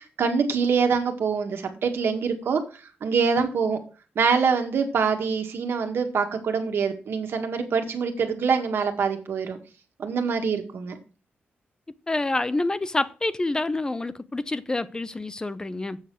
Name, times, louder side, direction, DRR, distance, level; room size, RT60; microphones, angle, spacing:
voice 1, 0.2-2.6 3.0-3.8 4.2-9.6 10.0-11.0, right 5 dB, 70° right, 1.8 m, -24 dB
voice 2, 12.1-16.0, left 2 dB, 20° left, 0.6 m, -27 dB
8.1 x 6.5 x 6.2 m
wide cardioid pair, 130°, 4 cm